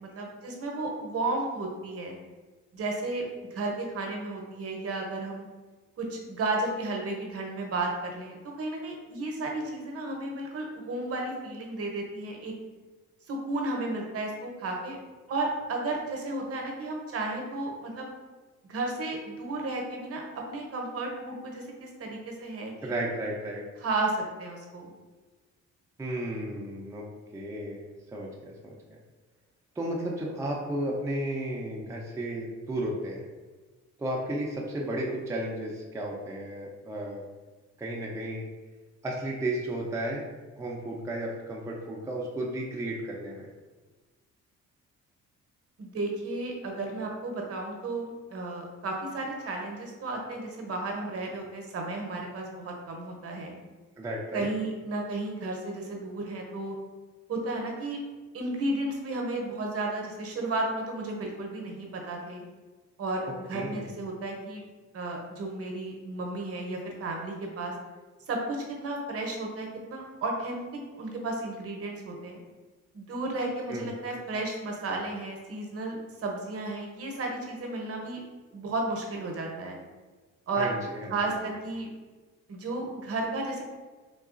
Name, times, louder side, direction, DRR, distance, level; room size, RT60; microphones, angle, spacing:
voice 1, 0.0-2.2 2.7-3.2 3.5-5.5 6.0-12.5 13.3-15.0 15.3-18.1 18.6-20.2 20.5-23.1 23.8-24.9 45.8-53.6 54.3-56.8 57.3-58.0 58.3-62.4 63.0-64.6 64.9-67.7 68.3-72.4 72.9-78.2 78.5-79.8 80.5-80.7 81.1-81.9 82.5-83.6, right 2 dB, 50° right, 1 dB, 0.7 m, -33 dB
voice 2, 22.8-23.6 26.0-27.0 27.3-29.0 29.8-33.2 34.0-37.2 37.8-38.5 39.0-40.2 40.6-43.5 54.0-54.5 63.5-63.9 73.7-73.9 80.6-81.4, right 1 dB, 10° right, -2 dB, 0.4 m, -33 dB
3.7 x 2.3 x 2.4 m, 1.3 s
cardioid pair, 90°, 30 cm